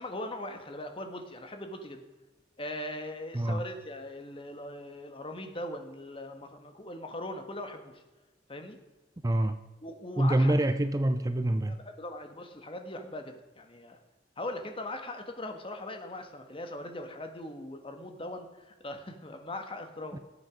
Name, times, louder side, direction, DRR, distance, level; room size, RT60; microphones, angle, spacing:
voice 1, 0.0-2.0 2.6-8.0 8.5-8.8 9.8-10.5 11.7-14.0 14.4-20.2, left 1 dB, 30° left, 6 dB, 1.6 m, -40 dB
voice 2, 9.2-9.6 10.2-11.8 20.1-20.2, right 1 dB, 20° right, 10 dB, 0.5 m, -26 dB
19.0 x 7.9 x 5.2 m, 1.1 s
head